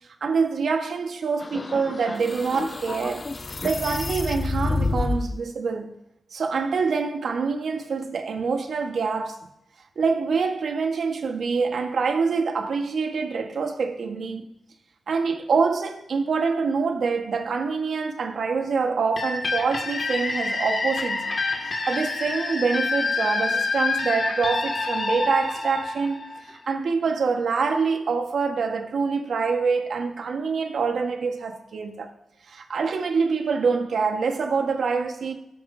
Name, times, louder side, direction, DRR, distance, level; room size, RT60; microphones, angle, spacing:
voice 1, 0.2-3.3 3.6-5.9 6.3-9.4 9.9-14.4 15.1-21.3 21.6-26.2 26.5-32.1 32.5-35.3, right 5 dB, 75° right, 1.5 m, -25 dB
sound 1, 1.4-5.4, left 3 dB, 35° left, 0.4 m, -29 dB
sound 2, 19.2-26.7, left 3 dB, 55° left, 2.1 m, -27 dB
17.5 x 7.8 x 2.8 m
cardioid pair, 85°, 0 cm